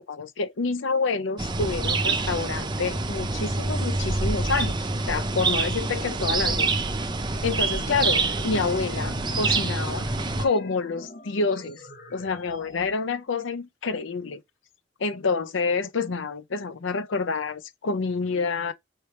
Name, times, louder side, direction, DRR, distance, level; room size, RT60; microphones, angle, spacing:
voice 1, 0.0-6.7 7.4-10.1 10.4-14.4 15.0-18.7, left 4 dB, 75° left, 0.6 m, -28 dB
sound 1, 1.4-10.5, right 3 dB, 25° right, 0.6 m, -26 dB
sound 2, 7.9-12.9, left 1 dB, 55° left, 1.1 m, -44 dB
4.3 x 3.4 x 3.0 m
head